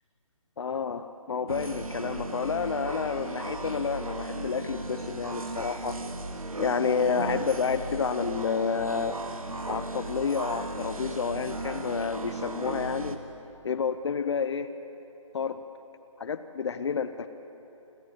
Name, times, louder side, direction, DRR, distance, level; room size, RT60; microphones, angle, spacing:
voice 1, 0.6-6.0 6.6-9.2 9.7-13.2 13.6-14.7 15.3-15.6 16.2-17.3, left 6 dB, 55° left, 10 dB, 0.8 m, -30 dB
sound 1, 1.5-13.2, right 2 dB, 85° right, 1.7 m, -36 dB
27.5 x 11.5 x 8.8 m, 2.9 s
figure-of-eight pair, 150°, 18 cm